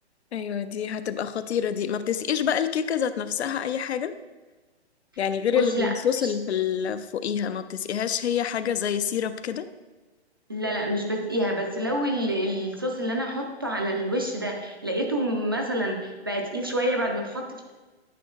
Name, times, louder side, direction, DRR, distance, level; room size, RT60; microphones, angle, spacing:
voice 1, 0.3-4.1 5.2-9.7, left 8 dB, 75° left, 12 dB, 0.6 m, -27 dB
voice 2, 5.5-6.3 10.5-17.7, equal, 20° right, 1 dB, 0.3 m, -28 dB
9.1 x 6.3 x 2.3 m, 1.2 s
hypercardioid pair, 160°, 33 cm